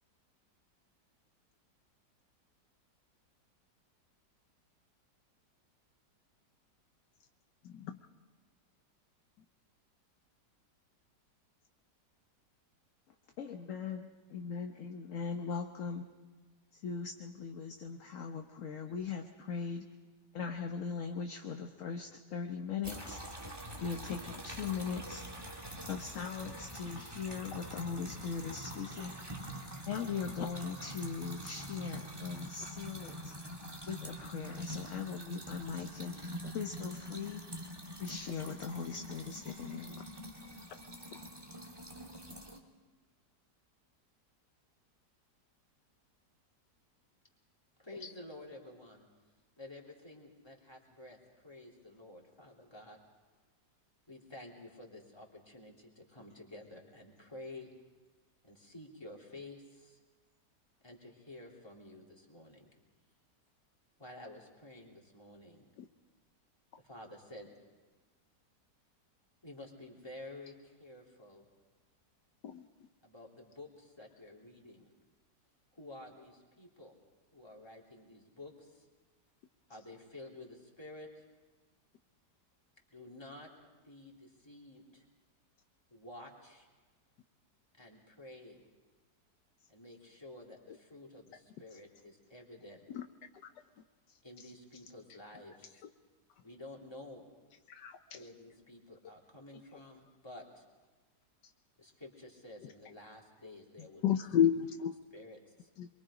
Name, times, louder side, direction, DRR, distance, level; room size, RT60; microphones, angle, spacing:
voice 1, 7.6-8.0 36.4-36.5 38.5-38.6 48.0-48.1 65.8-65.9 72.4-72.7 92.9-93.0 97.7-98.2 104.0-104.9 105.8-105.9, left 9 dB, 75° left, 7 dB, 1.4 m, -31 dB
voice 2, 13.4-16.0 16.7-19.9 20.3-23.2 23.8-25.2 25.9-29.3 29.9-33.3 33.9-36.3 36.5-37.4 38.0-39.9, left 6 dB, 50° left, 4 dB, 1.3 m, -40 dB
sound 1, 22.8-42.6, equal, 15° right, 1.7 m, -45 dB
voice 3, 47.8-49.1 49.6-53.0 54.1-57.7 58.4-60.0 60.8-62.7 64.0-65.6 66.8-67.5 69.4-71.4 73.0-74.9 75.7-76.9 77.3-78.9 79.7-81.2 82.9-83.5 83.8-85.0 85.9-86.7 87.8-88.6 89.7-92.9 94.2-95.9 96.4-97.3 98.1-100.6 101.8-104.2 104.5-104.6 105.1-105.7, left 1 dB, 15° left, -2 dB, 3.3 m, -51 dB
25.5 x 23.5 x 5.0 m, 1.3 s
omnidirectional pair, 1.9 m